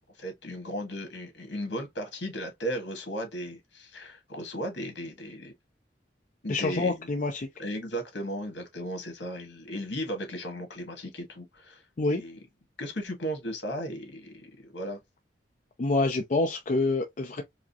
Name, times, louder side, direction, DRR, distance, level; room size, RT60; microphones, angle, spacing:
voice 1, 0.2-5.5 6.4-7.1 7.6-11.8 12.1-12.4 12.8-15.0, equal, 70° left, 1.5 m, -36 dB
voice 2, 6.5-7.5 12.0-12.2 15.8-17.4, left 3 dB, 40° left, 0.5 m, -27 dB
4.7 x 2.0 x 2.7 m
head